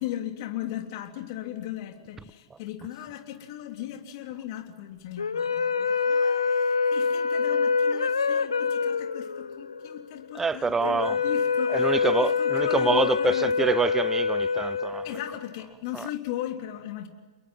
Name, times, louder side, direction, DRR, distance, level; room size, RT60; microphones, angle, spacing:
voice 1, 0.0-13.7 15.0-17.1, left 12 dB, 50° left, 3.4 m, -37 dB
sound 1, 5.2-15.6, left 5 dB, 80° left, 1.1 m, -26 dB
voice 2, 10.3-11.2 11.7-15.1 15.9-16.1, right 4 dB, 15° right, 0.8 m, -26 dB
29.0 x 22.0 x 5.8 m
hypercardioid pair, 110°, 3 cm